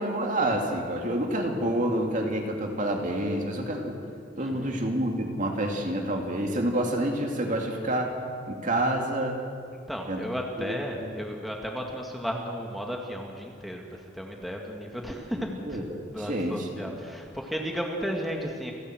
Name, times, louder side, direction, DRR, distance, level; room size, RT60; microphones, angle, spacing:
voice 1, 0.0-4.0 4.4-8.2 8.5-9.4 10.1-10.2 10.6-11.1 15.4-16.9, right 1 dB, 45° right, 2 dB, 2.5 m, -28 dB
voice 2, 4.4-4.8 9.9-15.8 16.1-18.7, equal, ahead, 0 dB, 2.0 m, -34 dB
29.5 x 12.0 x 7.9 m, 2.3 s
head